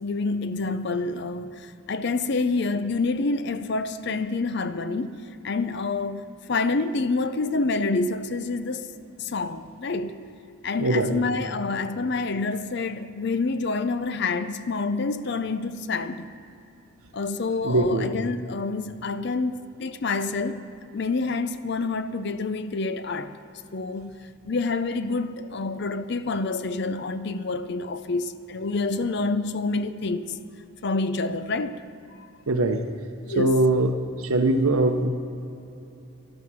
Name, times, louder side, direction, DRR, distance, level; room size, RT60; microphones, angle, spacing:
voice 1, 0.0-5.2 5.4-8.9 9.2-10.2 10.6-16.3 17.1-23.3 23.7-30.4 30.8-31.7 33.3-33.5, left 3 dB, 50° left, 0.5 m, -27 dB
voice 2, 10.8-11.2 17.6-18.1 32.5-32.9 33.4-35.1, right 2 dB, 90° right, 0.8 m, -22 dB
13.0 x 12.5 x 6.2 m
head